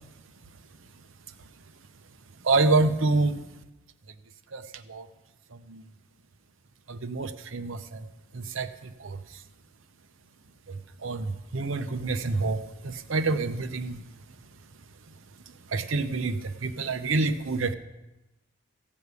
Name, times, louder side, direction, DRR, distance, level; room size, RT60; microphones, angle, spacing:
voice 1, 2.4-3.4 4.5-5.1 5.5-5.8 6.9-8.1 8.3-9.2 10.7-14.0 15.7-17.7, right 3 dB, 70° right, 9 dB, 0.7 m, -27 dB
15.5 x 5.3 x 8.2 m, 1.0 s
head